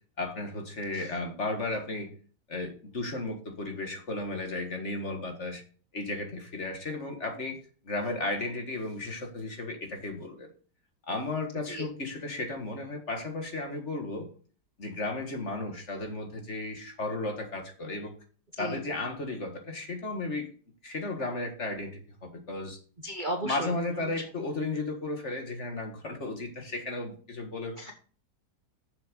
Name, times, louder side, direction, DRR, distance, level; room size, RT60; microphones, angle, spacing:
voice 1, 0.2-2.1 2.5-5.6 5.9-7.6 7.8-10.5 11.1-14.3 14.8-18.1 18.6-20.5 20.8-22.8 23.4-27.8, left 2 dB, 40° left, 4 dB, 1.8 m, -34 dB
voice 2, 23.0-23.7 24.0-24.1 27.8-27.9, right 1 dB, 35° right, 3 dB, 1.0 m, -34 dB
7.0 x 6.6 x 5.3 m, 0.40 s
omnidirectional pair, 1.9 m